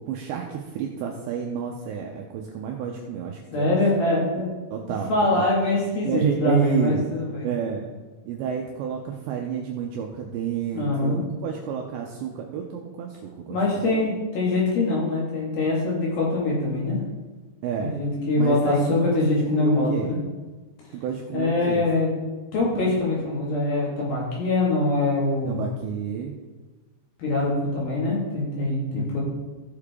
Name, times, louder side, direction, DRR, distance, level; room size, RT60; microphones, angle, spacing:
voice 1, 0.1-3.7 4.7-5.5 6.0-7.1 7.4-7.9 8.3-13.8 17.6-18.0 18.4-18.8 19.3-20.2 20.9-21.9 25.4-26.4 28.9-29.2, right 8 dB, 90° right, 1 dB, 2.5 m, -30 dB
voice 2, 3.5-4.5 4.8-7.5 10.7-11.2 13.5-17.0 17.8-20.2 21.3-22.2 22.5-25.6 27.2-29.2, left 2 dB, 55° left, -4 dB, 3.3 m, -23 dB
15.5 x 6.7 x 3.6 m, 1.3 s
omnidirectional pair, 6.0 m